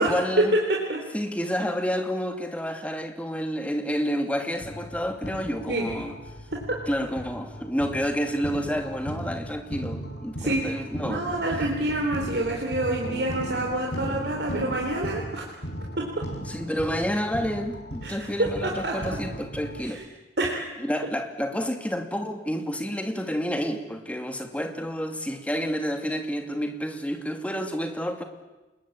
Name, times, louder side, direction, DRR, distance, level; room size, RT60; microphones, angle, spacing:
voice 1, 0.0-0.6 1.1-6.1 6.9-11.2 16.4-20.0 20.8-28.2, equal, 10° left, 5 dB, 2.5 m, -29 dB
voice 2, 0.7-1.0 5.7-5.8 6.5-6.6 10.4-10.6 11.0-15.4 16.0-16.2 18.0-19.2 19.9-20.0 20.4-20.7, right 2 dB, 65° right, -1 dB, 3.9 m, -27 dB
sound 1, 4.6-19.9, right 1 dB, 90° left, 5.6 m, -37 dB
28.5 x 21.0 x 8.6 m, 1.1 s
head